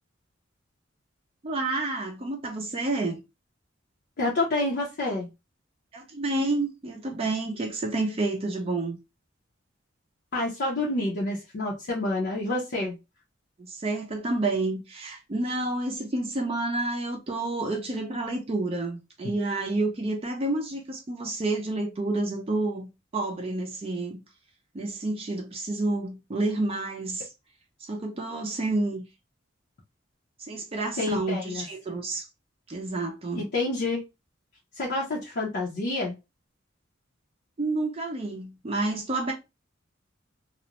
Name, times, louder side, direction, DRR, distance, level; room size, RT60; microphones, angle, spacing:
voice 1, 1.4-3.2 5.9-9.0 13.6-24.2 24.7-27.3 27.8-29.0 30.5-32.3 32.7-33.5 37.6-39.3, right 2 dB, 30° right, 0.4 m, -29 dB
voice 2, 4.2-5.3 10.3-13.0 19.2-19.3 31.0-31.7 33.4-34.0 34.8-36.1, left 2 dB, 55° left, 0.6 m, -28 dB
2.4 x 2.1 x 2.8 m
head